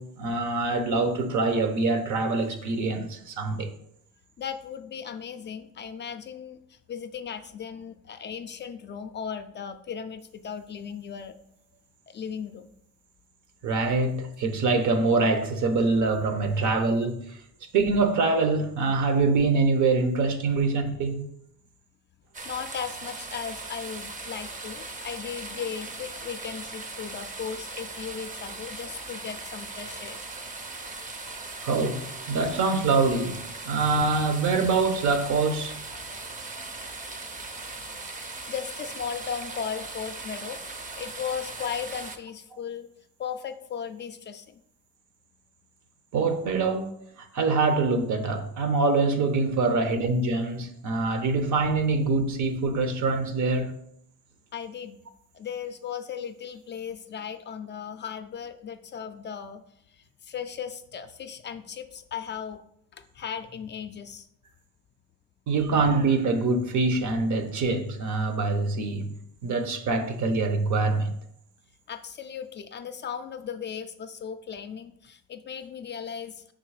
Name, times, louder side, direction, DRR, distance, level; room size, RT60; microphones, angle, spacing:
voice 1, 0.0-3.7 13.6-17.4 17.7-21.2 31.6-35.8 46.1-46.9 47.2-53.7 65.5-71.1, right 3 dB, 60° right, 0.9 m, -24 dB
voice 2, 4.4-11.4 12.1-12.7 16.5-16.7 22.4-30.2 38.5-40.6 40.9-42.9 43.2-44.6 54.5-55.0 55.3-59.6 59.9-62.6 62.9-64.3 71.9-76.5, left 7 dB, 35° left, 0.4 m, -37 dB
sound 1, 22.3-42.2, right 3 dB, 25° right, 0.6 m, -39 dB
5.1 x 3.8 x 4.8 m
cardioid pair, 115°, 33 cm